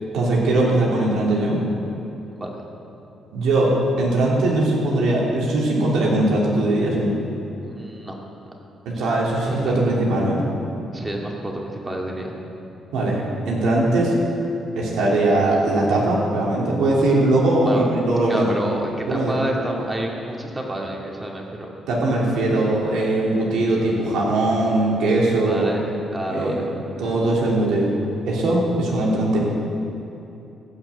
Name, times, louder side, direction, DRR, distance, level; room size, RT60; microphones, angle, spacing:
voice 1, 0.1-1.6 3.3-7.1 8.8-10.4 12.9-14.2 14.8-18.5 19.1-19.4 21.9-25.7 26.3-26.7 27.0-27.9 28.3-29.5, right 2 dB, 85° right, -4 dB, 3.1 m, -20 dB
voice 2, 7.6-8.1 9.2-9.7 10.9-12.3 17.6-17.9 18.3-21.7 25.4-25.9 26.1-26.7, right 1 dB, 20° right, -1 dB, 2.2 m, -29 dB
15.5 x 6.1 x 7.8 m, 2.9 s
cardioid pair, 90°, 0 cm